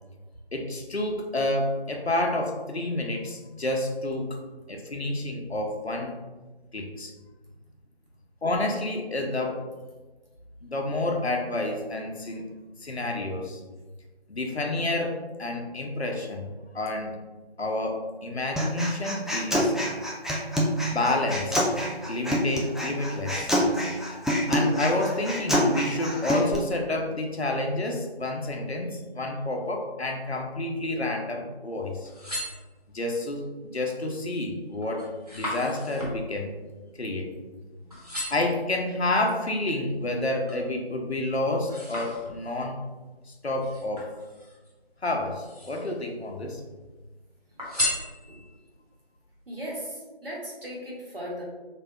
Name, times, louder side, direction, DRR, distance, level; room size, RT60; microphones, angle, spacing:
voice 1, 0.5-4.4 4.7-6.2 6.7-7.1 8.4-9.6 10.6-12.4 12.8-13.6 14.3-17.1 17.6-19.7 20.9-21.6 22.1-23.5 24.5-32.1 32.9-36.5 37.0-37.3 38.3-42.8 43.4-44.1 45.0-46.6, left 2 dB, 85° left, 2 dB, 0.8 m, -29 dB
Human voice, 18.6-26.5, equal, ahead, 0.3 m, -26 dB
sound 1, 31.9-33.2 33.7-34.1 34.5-37.6 37.9-38.6 39.2-40.7 41.1-42.7 43.6-44.7 45.2-46.0 46.4-47.1 47.6-48.6 49.2-49.3, left 1 dB, 40° right, 1.1 m, -36 dB
voice 2, 37.7-38.2 45.7-45.8 47.5-47.9 48.3-48.4 49.5-51.4, equal, 65° right, -4 dB, 1.3 m, -39 dB
3.3 x 2.3 x 4.1 m, 1.2 s
figure-of-eight pair, 180°, 31 cm